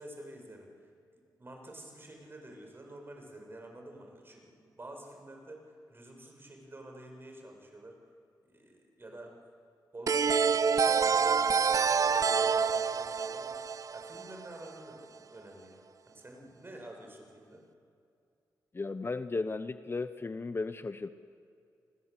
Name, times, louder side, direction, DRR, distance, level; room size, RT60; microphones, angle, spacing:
voice 1, 0.0-8.0 8.5-9.4 9.9-10.4 10.8-13.6 13.9-17.6, right 1 dB, 30° right, 2 dB, 7.1 m, -49 dB
sound 1, 10.1-14.7, right 6 dB, 50° right, 0.7 m, -27 dB
voice 2, 18.7-21.1, left 3 dB, 35° left, 11 dB, 1.0 m, -35 dB
29.0 x 21.0 x 8.4 m, 2.4 s
cardioid pair, 65°, 7 cm